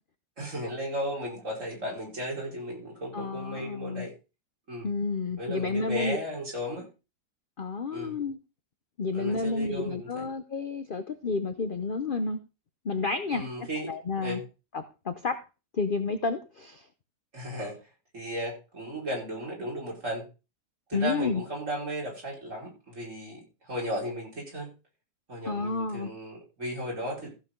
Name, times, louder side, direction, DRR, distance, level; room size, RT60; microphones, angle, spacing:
voice 1, 0.4-4.1 4.7-4.9 5.4-6.9 7.9-8.2 9.1-10.3 13.3-13.9 14.2-14.4 17.3-17.8 18.1-20.3 20.9-24.7 25.3-27.3, equal, 45° right, -2 dB, 5.2 m, -35 dB
voice 2, 3.1-4.1 4.8-6.2 7.6-8.4 9.0-12.4 12.8-13.4 13.9-14.4 14.7-15.4 15.7-16.9 20.9-21.4 25.5-26.1, left 3 dB, 45° left, 9 dB, 0.7 m, -30 dB
14.5 x 7.8 x 3.8 m, 0.30 s
omnidirectional pair, 1.8 m